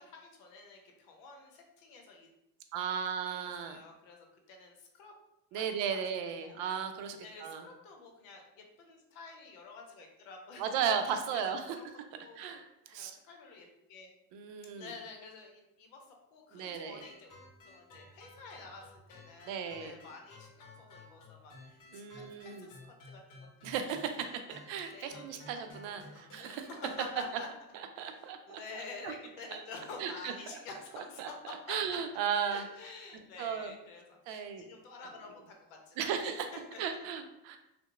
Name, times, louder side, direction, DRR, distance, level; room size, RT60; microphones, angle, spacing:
voice 1, 0.0-2.3 3.3-5.1 5.5-6.0 6.3-6.6 7.2-10.7 11.3-11.4 11.8-12.6 12.9-14.1 14.8-16.1 16.3-17.3 17.6-22.8 23.0-23.7 24.9-25.4 25.7-27.5 27.9-31.8 32.5-36.8, left 4 dB, 70° left, 2 dB, 0.7 m, -49 dB
voice 2, 2.7-3.8 5.5-7.7 10.6-11.8 12.4-13.1 14.3-14.9 16.5-17.0 19.5-19.9 21.9-22.7 23.6-26.7 28.0-29.1 29.5-29.6 30.0-30.6 30.9-31.3 31.7-32.6 33.4-33.7 34.3-34.7 36.0-36.5 36.8-37.6, right 7 dB, 65° right, 7 dB, 0.5 m, -36 dB
sound 1, 17.0-27.3, left 2 dB, 40° left, 1.0 m, -54 dB
2.8 x 2.1 x 2.3 m, 0.86 s
hypercardioid pair, 80°, 48 cm